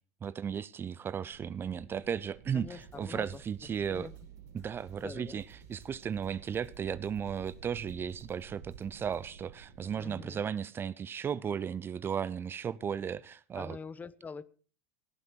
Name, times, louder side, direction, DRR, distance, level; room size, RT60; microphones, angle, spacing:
voice 1, 0.2-4.1 4.5-13.8, right 7 dB, 30° right, 19 dB, 0.6 m, -35 dB
sound 1, 1.3-10.2, right 8 dB, 75° right, 2.3 m, -53 dB
voice 2, 2.5-3.4 3.9-4.1 5.0-5.4 9.9-10.4 13.5-14.4, left 5 dB, 20° left, 18 dB, 0.8 m, -44 dB
sound 2, 2.7-9.2, right 4 dB, 45° right, 5.3 m, -60 dB
17.5 x 11.0 x 4.5 m, 0.38 s
hypercardioid pair, 100°, 8 cm